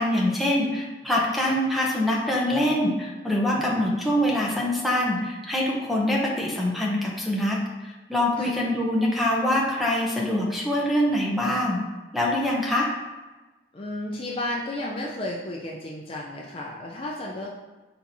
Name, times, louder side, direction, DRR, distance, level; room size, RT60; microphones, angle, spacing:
voice 1, 0.0-11.8 12.1-12.9, left 1 dB, ahead, -3 dB, 0.7 m, -24 dB
voice 2, 3.5-3.9 8.4-8.6 13.7-17.5, left 1 dB, 30° left, -3 dB, 0.4 m, -33 dB
4.6 x 4.3 x 2.7 m, 1.2 s
head